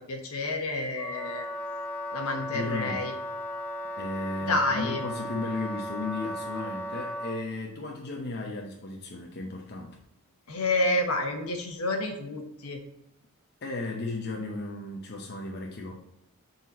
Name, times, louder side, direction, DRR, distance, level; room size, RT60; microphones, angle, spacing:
voice 1, 0.1-1.5 2.1-3.1 4.4-5.0 10.5-12.8, left 2 dB, 70° left, 4 dB, 1.1 m, -29 dB
Wind instrument woodwind instrument, 1.0-7.5, equal, 5° left, 0.5 m, -36 dB
voice 2, 2.5-3.0 4.0-10.0 13.6-15.9, left 2 dB, 45° left, 0 dB, 0.7 m, -35 dB
6.8 x 4.1 x 4.1 m, 0.84 s
head